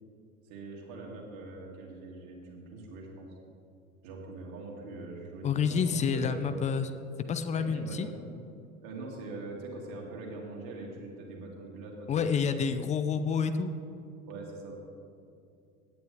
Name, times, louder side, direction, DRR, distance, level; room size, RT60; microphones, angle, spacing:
voice 1, 0.5-3.3 4.0-5.9 6.1-6.8 7.5-8.2 8.8-12.5 14.3-14.7, right 2 dB, 45° right, -2 dB, 2.8 m, -43 dB
voice 2, 5.4-6.9 7.3-8.1 12.1-13.7, left 6 dB, 15° left, 10 dB, 0.5 m, -28 dB
16.5 x 9.3 x 3.5 m, 2.5 s
figure-of-eight pair, 80°, 42 cm